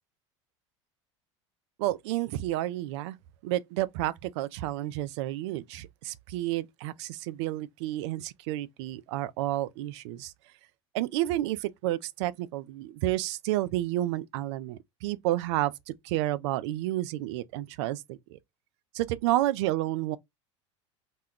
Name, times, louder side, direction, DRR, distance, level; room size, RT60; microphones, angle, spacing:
voice 1, 1.8-3.2 3.4-10.3 10.9-15.7 16.0-18.4 18.9-20.2, right 15 dB, 65° right, 0.4 m, -30 dB
2.3 x 2.1 x 3.5 m
hypercardioid pair, 80°, 16 cm